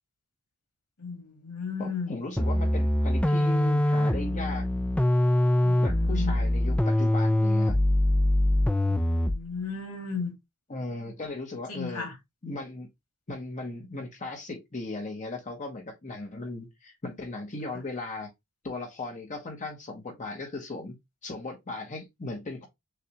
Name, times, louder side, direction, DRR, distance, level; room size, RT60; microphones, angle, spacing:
voice 1, 1.0-2.1 5.6-6.4 8.8-10.3 11.7-12.1, left 5 dB, 90° left, 2.0 m, -35 dB
voice 2, 1.8-4.7 5.8-7.8 10.7-12.1 12.4-12.9 13.3-18.3 18.6-21.0 21.2-22.7, left 2 dB, 35° left, 0.9 m, -37 dB
sound 1, 2.4-9.5, left 1 dB, 5° left, 0.3 m, -23 dB
6.5 x 2.3 x 2.9 m
head